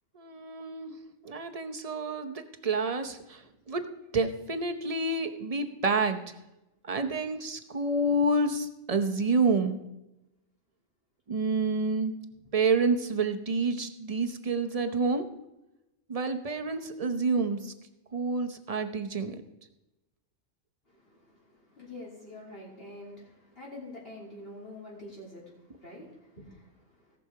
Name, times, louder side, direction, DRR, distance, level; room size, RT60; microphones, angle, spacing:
voice 1, 0.1-1.0 1.2-3.9 4.1-6.3 6.8-9.8 11.3-12.1 12.5-15.3 16.1-17.7 18.1-19.4, right 3 dB, 30° right, 7 dB, 0.8 m, -28 dB
voice 2, 20.9-27.2, left 1 dB, 45° left, -5 dB, 3.2 m, -46 dB
17.5 x 6.4 x 4.8 m, 0.94 s
omnidirectional pair, 1.4 m